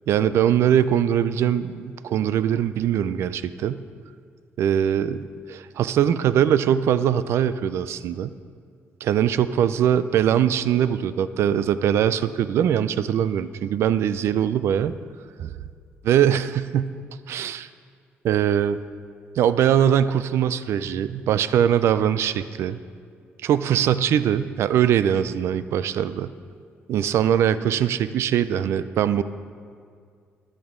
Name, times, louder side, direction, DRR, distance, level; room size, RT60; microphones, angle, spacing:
voice 1, 0.1-3.8 4.6-8.3 9.0-15.0 15.4-15.5 16.0-17.0 17.3-17.7 18.2-18.8 19.4-22.8 23.4-26.3 26.9-29.2, right 9 dB, 75° right, 14 dB, 0.4 m, -22 dB
14.0 x 10.5 x 3.7 m, 2.1 s
cardioid pair, 130°, 5 cm